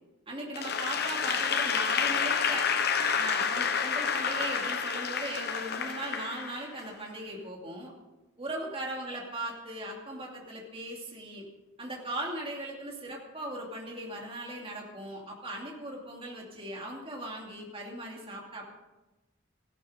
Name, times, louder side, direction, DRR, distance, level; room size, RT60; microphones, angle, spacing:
voice 1, 0.3-2.7 3.1-7.9 8.4-11.5 11.8-18.7, right 1 dB, 30° right, -1 dB, 2.7 m, -38 dB
Applause / Crowd, 0.5-6.9, left 6 dB, 55° left, 1.0 m, -29 dB
15.5 x 12.0 x 5.2 m, 1.1 s
head